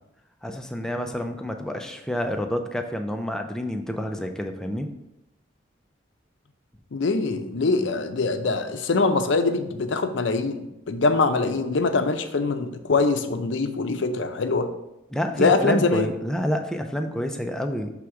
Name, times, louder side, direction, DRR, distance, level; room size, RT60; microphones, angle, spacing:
voice 1, 0.4-4.9 15.1-17.9, equal, 5° left, 5 dB, 0.4 m, -28 dB
voice 2, 6.9-14.7 15.4-16.1, left 3 dB, 65° left, 8 dB, 0.5 m, -23 dB
6.3 x 3.5 x 4.6 m, 0.90 s
head